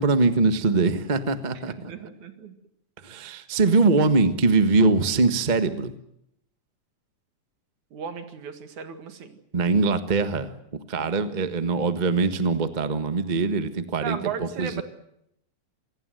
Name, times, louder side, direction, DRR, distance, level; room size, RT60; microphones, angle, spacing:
voice 1, 0.0-1.9 3.0-5.9 9.5-10.5 10.9-14.8, right 3 dB, 35° right, 10 dB, 0.7 m, -22 dB
voice 2, 1.5-2.6 7.9-9.3 14.0-14.8, right 7 dB, 75° right, 9 dB, 3.3 m, -35 dB
27.5 x 18.5 x 7.8 m, 0.76 s
omnidirectional pair, 3.5 m